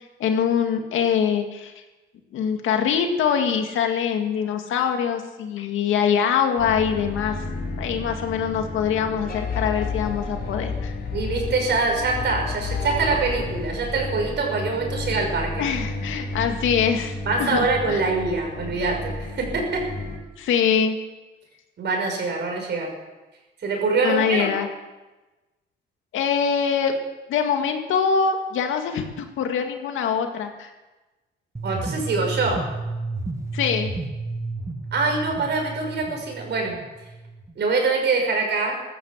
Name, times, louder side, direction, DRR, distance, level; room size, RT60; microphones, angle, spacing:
voice 1, 0.0-1.7 2.3-7.4 7.8-10.9 15.6-18.0 20.4-21.0 24.0-24.7 26.1-26.9 27.3-30.7 33.5-33.9, left 7 dB, 80° left, 5 dB, 2.0 m, -23 dB
sound 1, 6.6-20.2, left 3 dB, 50° left, 3.3 m, -31 dB
voice 2, 11.1-15.6 17.3-19.8 21.8-22.9 23.6-24.5 31.6-32.6 34.9-36.7 37.6-38.8, right 3 dB, 60° right, 1 dB, 6.0 m, -24 dB
sound 2, 31.6-37.5, right 2 dB, 15° right, 1.5 m, -32 dB
14.5 x 13.5 x 7.4 m, 1.1 s
cardioid pair, 90°, 20 cm